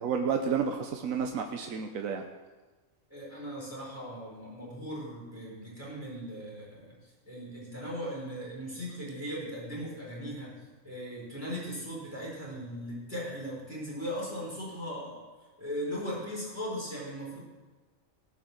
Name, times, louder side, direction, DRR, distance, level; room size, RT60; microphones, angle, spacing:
voice 1, 0.0-2.2, right 6 dB, 85° right, 4 dB, 1.3 m, -30 dB
voice 2, 3.1-7.0 7.3-10.6 10.8-15.2 15.6-17.4, equal, 10° right, -5 dB, 4.5 m, -38 dB
18.0 x 6.3 x 6.3 m, 1.3 s
omnidirectional pair, 1.4 m